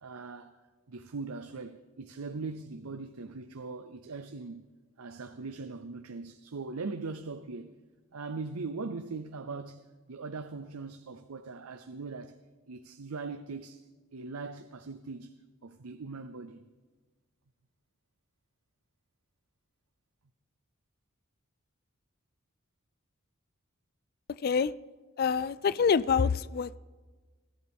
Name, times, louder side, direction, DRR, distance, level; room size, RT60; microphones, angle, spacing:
voice 1, 0.0-0.6 0.9-4.6 5.0-7.7 8.1-9.8 10.1-12.4 12.7-13.8 14.1-15.3 15.6-16.6, right 4 dB, 85° right, 0.6 m, -40 dB
voice 2, 24.4-24.7 25.2-26.8, left 6 dB, 45° left, 0.4 m, -26 dB
21.0 x 14.0 x 3.6 m
head